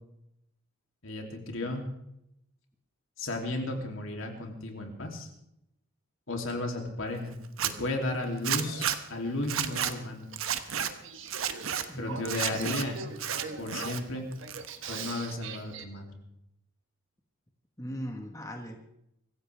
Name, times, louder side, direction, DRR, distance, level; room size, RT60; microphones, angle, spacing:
voice 1, 1.0-1.8 3.2-5.3 6.3-7.3 7.8-10.3 12.0-13.0 13.6-14.3 14.9-16.1, left 2 dB, 70° left, 2 dB, 3.0 m, -34 dB
Zipper (clothing), 7.4-7.7 8.4-9.0 9.4-9.9 10.4-10.9 11.3-11.8 12.3-12.8 13.2-14.0 14.3-14.9, right 9 dB, 80° right, 1.1 m, -31 dB
Male speech man speaking / Female speech woman speaking / Conversation, 8.2-15.8, right 5 dB, 65° right, 1.4 m, -43 dB
voice 2, 11.9-12.8 17.8-18.8, equal, 15° left, 3 dB, 1.4 m, -39 dB
24.5 x 15.0 x 3.5 m, 0.80 s
head